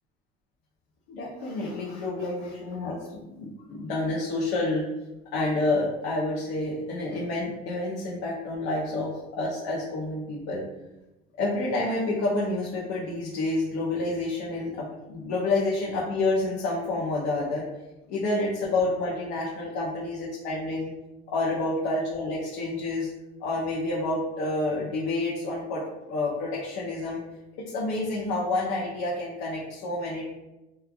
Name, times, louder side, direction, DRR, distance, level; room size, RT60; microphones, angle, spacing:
voice 1, 1.1-4.8 5.3-10.6 11.4-17.7 18.1-20.9 21.3-23.1 23.4-27.2 27.7-30.2, left 2 dB, 70° left, -5 dB, 0.6 m, -29 dB
3.0 x 2.3 x 2.3 m, 1.0 s
cardioid pair, 155°, 20 cm